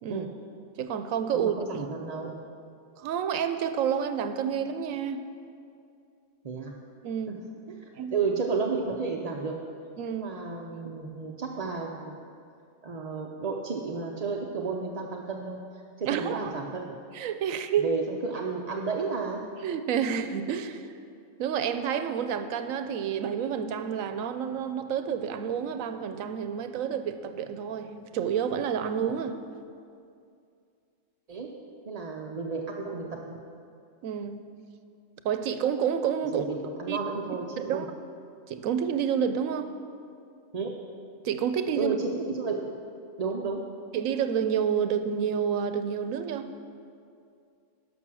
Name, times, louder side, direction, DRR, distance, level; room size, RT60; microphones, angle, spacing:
voice 1, 0.8-1.5 3.0-5.2 7.0-7.4 8.0-8.1 10.0-10.3 16.0-16.5 17.1-18.0 19.6-20.8 21.4-29.4 34.0-34.4 35.2-36.5 36.9-37.0 37.6-37.9 38.5-39.7 41.2-41.9 43.9-46.5, right 8 dB, 85° right, 10 dB, 1.0 m, -29 dB
voice 2, 1.3-2.4 6.4-6.8 7.3-7.4 7.7-9.6 10.1-12.2 12.8-15.6 16.0-17.0 17.8-19.5 31.3-31.5 31.9-33.4 36.3-37.9 40.5-40.7 41.8-42.7 43.2-43.6, right 4 dB, 45° right, 0 dB, 0.5 m, -32 dB
11.5 x 5.9 x 6.2 m, 2.4 s
omnidirectional pair, 1.4 m